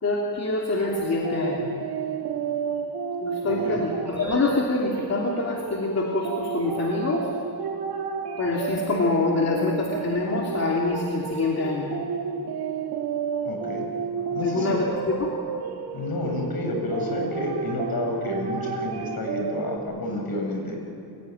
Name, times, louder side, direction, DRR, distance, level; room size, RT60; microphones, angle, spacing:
voice 1, 0.0-1.7 3.2-7.3 8.4-11.9 14.4-15.3, left 3 dB, 40° left, -2 dB, 3.0 m, -25 dB
sound 1, 0.8-19.8, right 6 dB, 70° right, 2.7 m, -31 dB
voice 2, 3.4-3.9 13.4-13.9 14.3-14.8 15.9-20.8, left 2 dB, 65° left, 2 dB, 7.5 m, -30 dB
29.0 x 16.5 x 9.5 m, 2.7 s
cardioid pair, 110°, 39 cm